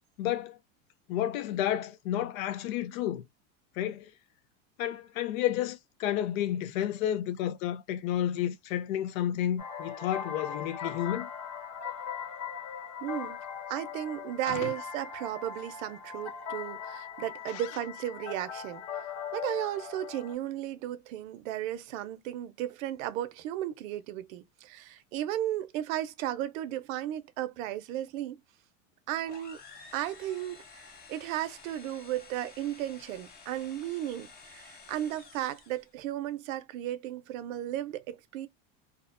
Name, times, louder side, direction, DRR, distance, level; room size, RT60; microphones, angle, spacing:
voice 1, 0.2-0.6 1.1-3.2 3.8-4.1 4.8-11.3 14.5-14.7, left 11 dB, 85° left, 0.6 m, -31 dB
sound 1, 9.6-20.3, left 7 dB, 45° left, 1.0 m, -40 dB
voice 2, 13.0-13.4 13.7-18.8 19.3-28.4 29.1-29.6 29.9-38.5, right 12 dB, 80° right, 0.5 m, -35 dB
sound 2, 29.2-35.9, left 4 dB, 25° left, 0.6 m, -52 dB
2.4 x 2.1 x 2.4 m
supercardioid pair, 130°, 39 cm